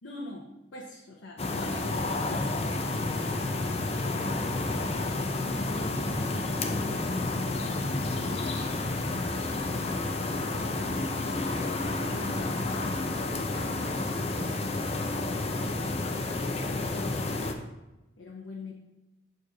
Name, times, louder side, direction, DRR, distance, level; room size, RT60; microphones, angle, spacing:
voice 1, 0.0-4.6 4.9-7.3 18.2-18.7, left 2 dB, 85° left, -1 dB, 0.8 m, -45 dB
sound 1, 1.4-17.5, left 2 dB, 35° left, 0.5 m, -30 dB
sound 2, 10.7-16.1, equal, 5° left, 1.6 m, -44 dB
6.9 x 3.2 x 5.7 m, 1.0 s
head